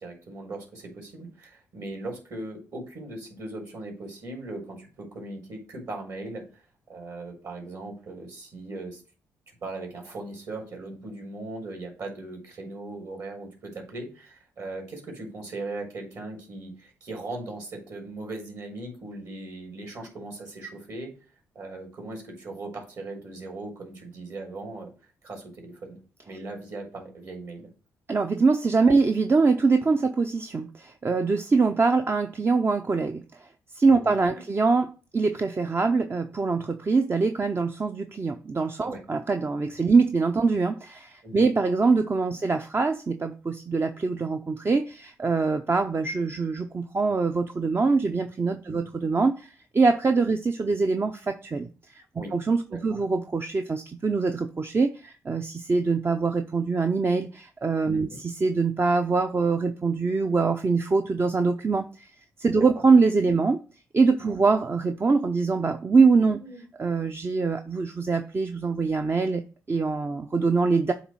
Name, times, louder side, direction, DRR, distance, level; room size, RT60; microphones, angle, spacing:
voice 1, 0.0-6.4 6.9-9.0 9.6-21.1 21.5-24.9 25.2-26.0 26.3-27.7 33.9-34.4 38.8-39.0 41.2-41.4 48.7-48.9 52.2-52.3 52.7-53.0 57.9-58.2 62.5-62.8 64.2-64.4 66.4-66.6, right 2 dB, 55° right, 3.7 m, -39 dB
voice 2, 28.1-33.4 33.7-51.7 51.9-52.0 52.3-62.1 62.4-63.6 63.9-66.4 66.8-70.9, right 4 dB, 35° right, 0.7 m, -24 dB
7.9 x 3.2 x 6.2 m
hypercardioid pair, 50°, 7 cm